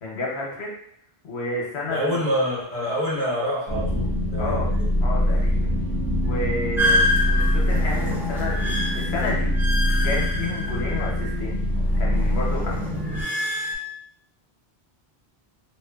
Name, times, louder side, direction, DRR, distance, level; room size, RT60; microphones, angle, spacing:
voice 1, 0.0-0.7 1.2-2.1 4.4-4.7 5.0-5.8 6.2-9.5 10.0-11.6 12.0-13.0, left 2 dB, 85° left, -3 dB, 1.0 m, -30 dB
voice 2, 1.9-4.9, equal, 35° right, -7 dB, 0.9 m, -26 dB
sound 1, 3.7-13.2, left 1 dB, 85° right, 0.9 m, -24 dB
Keyboard (musical), 5.5-11.5, right 7 dB, 65° left, 0.7 m, -40 dB
sound 2, 6.8-11.5 11.8-13.8, left 1 dB, 5° right, 0.5 m, -27 dB
3.0 x 2.2 x 2.2 m, 0.66 s
omnidirectional pair, 1.1 m